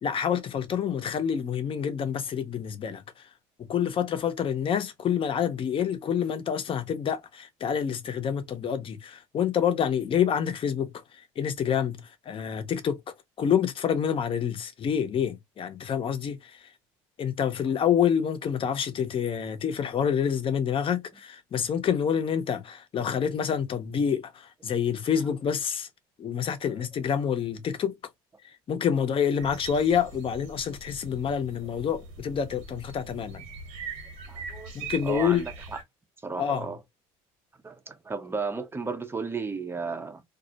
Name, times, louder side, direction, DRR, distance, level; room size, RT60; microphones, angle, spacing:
voice 1, 0.0-3.0 3.6-10.9 11.4-16.7 17.2-25.9 26.2-28.0 28.4-33.5 34.7-35.4 36.4-36.7, left 8 dB, 40° left, 0.6 m, -27 dB
sound 1, 29.4-35.8, right 5 dB, 75° right, 1.1 m, -41 dB
voice 2, 34.3-35.8 36.2-36.8 37.6-40.2, right 4 dB, 15° right, 0.5 m, -34 dB
2.3 x 2.0 x 2.7 m
supercardioid pair, 85°, 14 cm